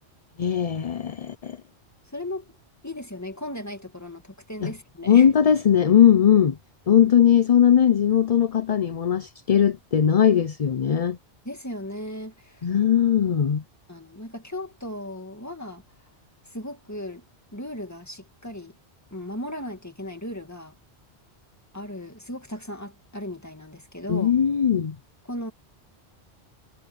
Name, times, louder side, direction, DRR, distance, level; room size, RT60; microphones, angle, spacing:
voice 1, 0.4-1.6 4.6-4.7 5.1-6.6 6.9-11.2 12.6-13.6 24.1-25.0, left 9 dB, 45° left, 0.6 m, -19 dB
voice 2, 2.1-2.5 2.8-5.3 7.0-7.1 11.4-12.7 13.0-13.2 13.9-15.8 16.5-17.2 17.5-18.7 19.1-20.7 21.7-24.4 25.3-25.5, left 1 dB, 15° left, 2.3 m, -36 dB
omnidirectional pair, 1.1 m